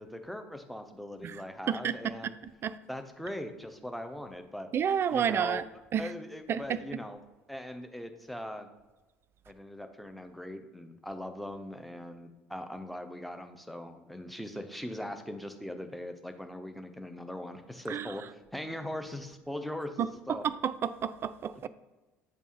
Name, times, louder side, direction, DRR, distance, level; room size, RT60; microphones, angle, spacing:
voice 1, 0.0-2.3 2.9-4.7 5.1-5.6 6.0-7.2 7.5-8.7 9.5-20.4, left 1 dB, ahead, 0.7 m, -40 dB
voice 2, 1.7-2.1 2.6-2.7 4.7-5.6 5.9-6.1 6.5-7.0 17.9-18.1 20.0-21.7, right 8 dB, 35° right, 0.3 m, -30 dB
8.6 x 3.5 x 4.2 m
figure-of-eight pair, 60°, 7 cm